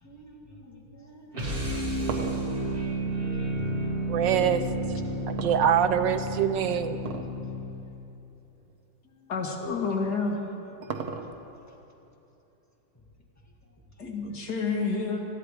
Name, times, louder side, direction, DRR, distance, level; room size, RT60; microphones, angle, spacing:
voice 1, 0.0-1.9 5.1-5.4 9.2-9.3, equal, 10° left, -3 dB, 1.9 m, -50 dB
sound 1, 1.3-7.8, right 1 dB, 30° right, 1.9 m, -31 dB
sound 2, 1.8-4.0 5.4-6.3 7.0-7.4 7.8-7.9 8.6-8.7 10.1-11.6, right 5 dB, 60° right, 1.4 m, -37 dB
voice 2, 4.1-4.6 5.3-7.0, right 9 dB, 75° right, 10 dB, 1.3 m, -24 dB
voice 3, 9.3-10.4 14.0-15.2, left 4 dB, 60° left, 1 dB, 2.0 m, -29 dB
20.5 x 14.5 x 4.8 m, 2.9 s
omnidirectional pair, 2.0 m